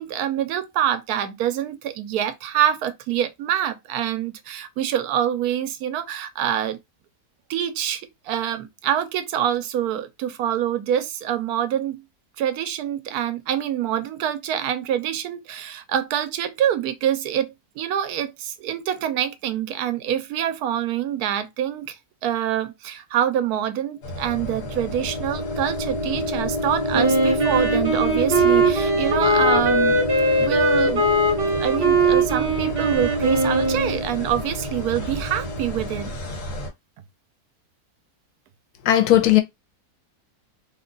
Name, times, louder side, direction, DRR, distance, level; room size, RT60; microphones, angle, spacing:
voice 1, 0.0-6.8 7.5-12.0 12.4-22.0 22.2-30.0 30.4-31.0 31.5-36.1, right 10 dB, 80° right, 1.1 m, -25 dB
sound 1, 24.0-36.7, equal, 60° left, 1.4 m, -33 dB
sound 2, 24.2-36.1, left 1 dB, 30° left, 0.8 m, -29 dB
Wind instrument woodwind instrument, 26.9-34.0, right 2 dB, 40° right, 1.1 m, -21 dB
voice 2, 38.9-39.4, left 13 dB, 90° left, 1.1 m, -16 dB
2.8 x 2.3 x 3.8 m
omnidirectional pair, 1.6 m